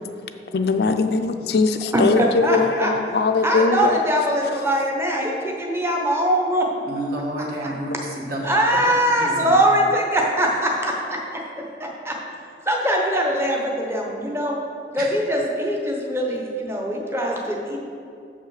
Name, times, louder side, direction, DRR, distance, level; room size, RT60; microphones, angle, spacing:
voice 1, 0.5-4.0 8.0-8.1, left 4 dB, 60° left, 7 dB, 0.4 m, -20 dB
voice 2, 2.4-2.9 3.4-5.3 5.6-6.7 8.4-10.9 12.1-12.2 12.7-14.6 14.9-17.8, equal, 15° right, 0 dB, 0.8 m, -21 dB
voice 3, 6.9-8.5 9.2-9.6 15.0-15.1, right 1 dB, 50° right, -2 dB, 1.4 m, -30 dB
7.2 x 5.6 x 6.4 m, 2.5 s
head